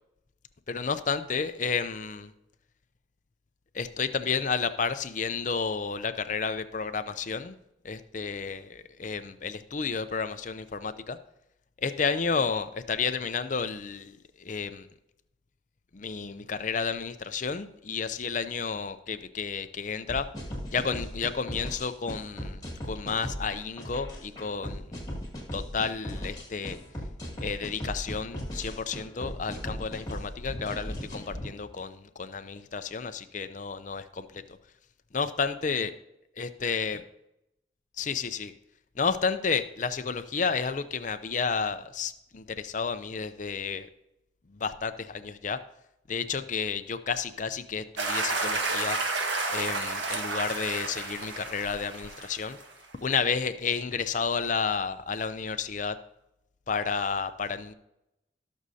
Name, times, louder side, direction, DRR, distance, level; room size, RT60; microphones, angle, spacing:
voice 1, 0.7-2.3 3.7-7.5 7.8-11.2 11.8-14.9 15.9-20.3 20.7-25.0 25.5-26.8 27.4-34.4 35.1-35.9 36.4-37.0 38.0-38.5 39.0-43.9 44.5-45.6 46.1-49.0 49.5-52.6 53.0-56.0 56.7-57.7, left 5 dB, 40° left, 11 dB, 0.5 m, -31 dB
sound 1, 20.1-31.5, equal, 20° left, 2.4 m, -37 dB
sound 2, 48.0-52.7, right 3 dB, 75° right, 1.6 m, -31 dB
18.5 x 6.3 x 2.8 m, 0.86 s
head